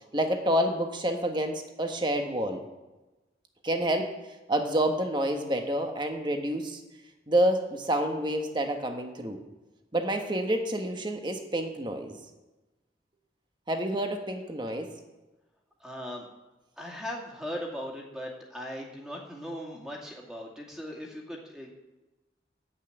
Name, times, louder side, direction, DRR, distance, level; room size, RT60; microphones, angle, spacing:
voice 1, 0.1-2.6 3.6-4.1 4.5-6.8 7.3-9.4 9.9-12.2 13.7-14.9, right 1 dB, 25° right, 4 dB, 1.3 m, -28 dB
voice 2, 15.8-16.3 16.8-21.7, equal, 5° right, -2 dB, 2.3 m, -38 dB
10.0 x 8.4 x 9.2 m, 1.1 s
head